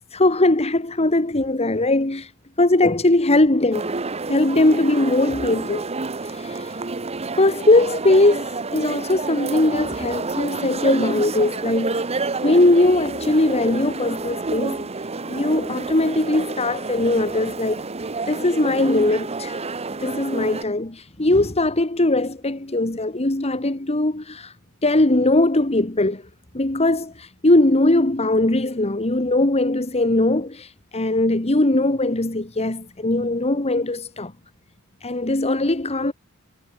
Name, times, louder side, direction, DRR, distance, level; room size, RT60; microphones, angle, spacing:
voice 1, 0.1-2.3 2.6-3.9 4.3-5.8 6.2-6.7 7.4-12.0 12.4-14.9 15.3-17.8 18.3-19.6 20.0-24.5 24.8-26.2 26.5-34.3 35.0-36.1, left 2 dB, 30° left, 1.8 m, -20 dB
sound 1, 3.7-20.6, right 3 dB, 30° right, 1.0 m, -29 dB
head